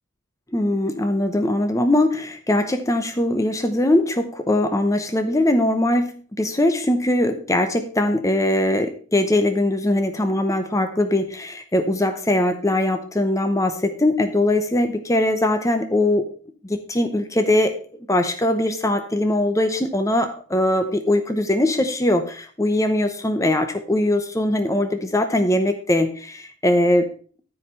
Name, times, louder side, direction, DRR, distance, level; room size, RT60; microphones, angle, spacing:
voice 1, 0.5-16.3 16.6-17.8 18.1-27.1, left 1 dB, 15° left, 7 dB, 0.8 m, -21 dB
13.0 x 4.9 x 5.5 m, 0.43 s
head